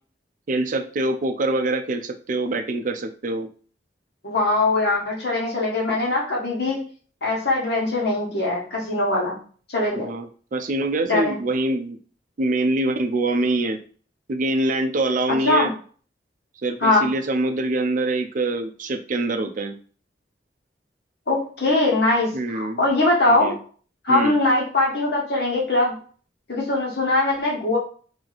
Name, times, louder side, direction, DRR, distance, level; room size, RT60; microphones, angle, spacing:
voice 1, 0.5-3.5 9.9-12.0 12.4-13.8 14.3-15.7 16.6-19.7 22.3-22.8 23.3-23.6 24.1-24.4, right 2 dB, 45° right, 7 dB, 0.5 m, -24 dB
voice 2, 4.2-6.8 7.2-9.4 9.7-10.1 11.0-11.4 15.5-15.7 16.8-17.1 21.3-23.5 24.0-26.0 26.5-27.8, left 2 dB, 65° left, -3 dB, 1.5 m, -21 dB
3.0 x 2.8 x 4.0 m, 0.42 s
head